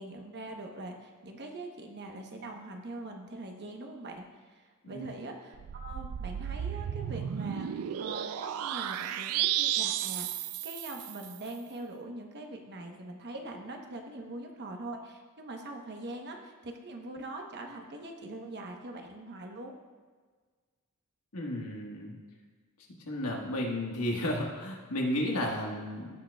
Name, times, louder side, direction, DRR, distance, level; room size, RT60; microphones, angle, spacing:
voice 1, 0.0-19.7, right 2 dB, 50° right, 3 dB, 1.0 m, -43 dB
sound 1, 5.5-11.4, right 11 dB, 75° right, 0.3 m, -33 dB
voice 2, 21.3-22.1 23.1-26.1, left 1 dB, 85° left, -1 dB, 1.5 m, -33 dB
16.0 x 6.6 x 2.3 m, 1.5 s
head